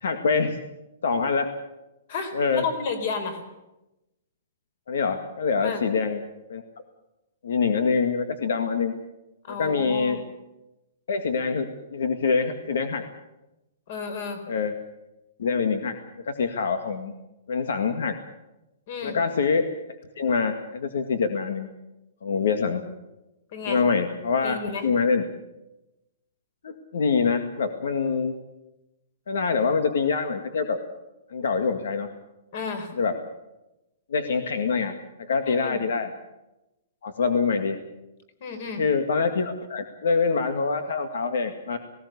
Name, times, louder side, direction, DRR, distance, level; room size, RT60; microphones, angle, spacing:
voice 1, 0.0-0.6 1.0-1.5 2.3-2.6 4.9-6.2 6.5-6.6 7.4-9.0 9.5-10.2 11.1-13.0 14.5-14.7 15.4-17.1 17.5-18.2 19.0-19.7 20.2-21.7 22.2-22.8 23.7-24.6 24.8-25.2 26.6-28.3 29.3-30.8 31.3-32.1 33.0-33.2 34.1-34.9 35.2-36.1 37.0-37.8 38.8-41.8, left 5 dB, 75° left, 7 dB, 2.0 m, -25 dB
voice 2, 2.1-3.4 5.6-5.8 9.4-10.2 13.9-14.4 18.9-19.2 23.5-23.8 24.4-24.8 32.5-32.9 35.5-35.8 38.4-38.8, left 5 dB, 40° left, 8 dB, 4.1 m, -32 dB
19.0 x 18.0 x 8.3 m, 0.94 s
hypercardioid pair, 175°, 0 cm